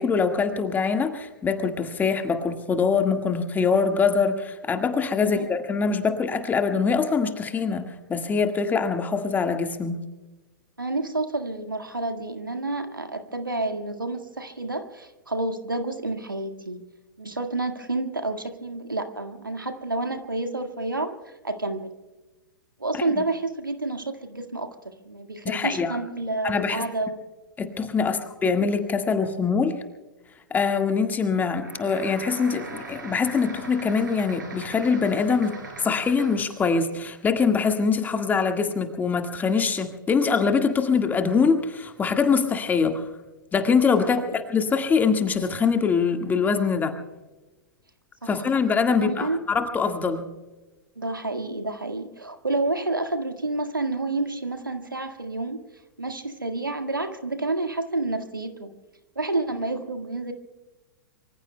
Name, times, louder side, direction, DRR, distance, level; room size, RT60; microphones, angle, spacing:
voice 1, 0.0-10.0 22.9-23.0 25.5-26.0 26.4-26.9 27.6-29.8 30.5-43.0 43.5-46.9 48.3-50.3, left 5 dB, 15° left, 6 dB, 1.7 m, -23 dB
voice 2, 10.8-16.8 17.2-21.9 22.8-27.2 28.0-28.2 44.0-44.1 48.2-48.5 48.9-49.4 51.0-55.6 56.0-58.7 59.2-60.3, right 2 dB, 90° right, 7 dB, 1.8 m, -29 dB
sound 1, 31.6-36.6, right 3 dB, 70° right, 6.6 m, -40 dB
25.0 x 24.0 x 2.2 m, 1.2 s
figure-of-eight pair, 105°, 11 cm